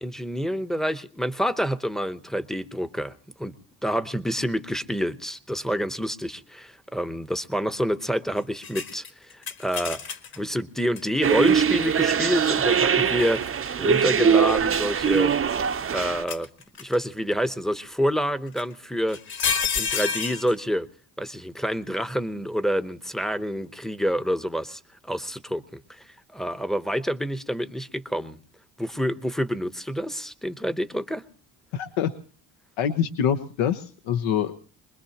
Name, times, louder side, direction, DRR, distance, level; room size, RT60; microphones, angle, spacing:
voice 1, 0.0-3.1 3.4-3.5 3.8-10.0 10.4-13.4 13.8-15.3 15.9-16.5 16.8-19.2 19.7-20.9 21.2-24.8 25.1-25.8 26.3-28.4 28.8-31.2, equal, ahead, 13 dB, 0.8 m, -27 dB
sound 1, 8.6-10.4 11.0-11.1 13.1-13.7 14.5-15.6 16.3-17.0 18.6-18.7 19.1-20.5, left 6 dB, 45° left, 1.8 m, -29 dB
sound 2, 11.2-16.2, right 7 dB, 30° right, 0.7 m, -22 dB
voice 2, 31.7-32.1 32.8-34.5, left 8 dB, 75° left, 8 dB, 1.1 m, -25 dB
23.5 x 21.0 x 2.9 m, 0.40 s
supercardioid pair, 80°, 48 cm